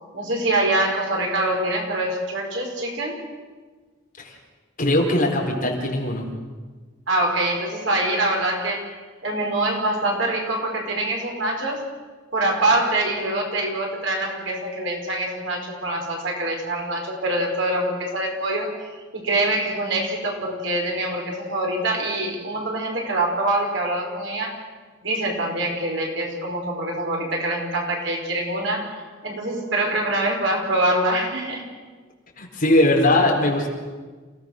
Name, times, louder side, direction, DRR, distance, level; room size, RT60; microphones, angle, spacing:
voice 1, 0.1-3.1 7.1-8.9 9.2-11.8 12.3-18.7 19.1-24.5 25.0-28.9 29.2-31.6, right 1 dB, 65° right, 0 dB, 5.2 m, -24 dB
voice 2, 4.8-6.3 32.4-33.7, left 1 dB, 40° left, 0 dB, 4.3 m, -20 dB
28.5 x 17.5 x 6.6 m, 1.4 s
head